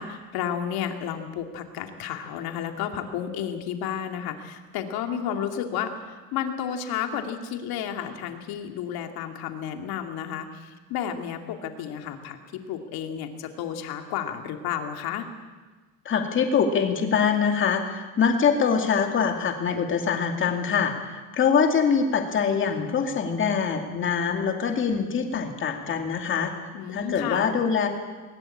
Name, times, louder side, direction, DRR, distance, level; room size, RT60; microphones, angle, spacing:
voice 1, 0.0-15.3 26.7-27.5, left 9 dB, 90° left, 5 dB, 2.6 m, -32 dB
voice 2, 16.0-26.5 26.9-27.9, left 6 dB, 35° left, 4 dB, 2.5 m, -24 dB
20.5 x 19.5 x 8.7 m, 1.3 s
cardioid pair, 175°, 36 cm